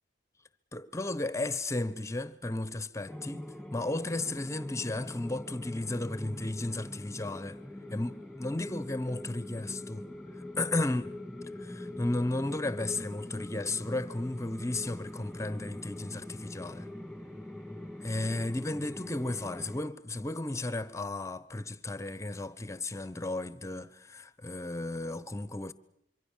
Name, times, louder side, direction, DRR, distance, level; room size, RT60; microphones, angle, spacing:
voice 1, 0.7-7.6 7.9-10.1 10.6-11.2 11.6-16.9 18.0-25.7, left 2 dB, 15° left, 1.0 m, -34 dB
sound 1, 3.1-19.8, left 1 dB, 5° right, 2.2 m, -43 dB
25.5 x 24.0 x 7.3 m
head